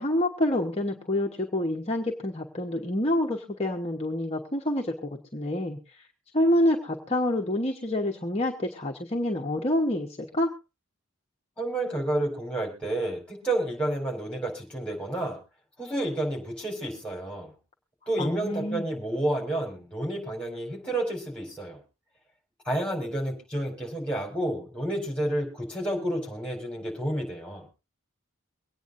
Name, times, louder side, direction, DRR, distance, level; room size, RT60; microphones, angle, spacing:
voice 1, 0.0-6.1 6.3-10.5 18.2-18.9, left 1 dB, 30° left, 1 dB, 1.2 m, -27 dB
voice 2, 11.6-15.4 15.8-17.5 18.1-21.8 22.6-27.6, right 1 dB, 5° left, 2 dB, 4.4 m, -30 dB
24.0 x 9.2 x 2.6 m, 0.28 s
head